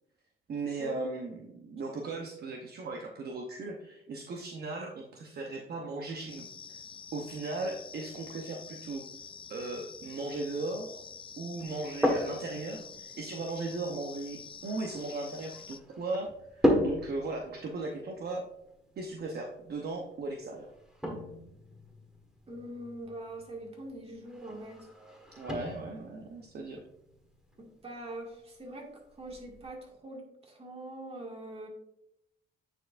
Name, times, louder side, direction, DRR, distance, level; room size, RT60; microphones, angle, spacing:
voice 1, 0.5-6.8 7.1-9.0 9.5-11.0 11.4-18.5 19.0-20.7 25.4-26.8, right 3 dB, 55° right, 1 dB, 0.8 m, -37 dB
sound 1, 6.3-15.8, left 6 dB, 25° left, 0.3 m, -47 dB
sound 2, 11.6-29.7, equal, 5° right, 1.4 m, -37 dB
voice 2, 22.5-24.9 27.6-31.7, right 1 dB, 30° right, 0 dB, 1.9 m, -43 dB
9.1 x 4.5 x 2.5 m, 0.80 s
cardioid pair, 90°, 20 cm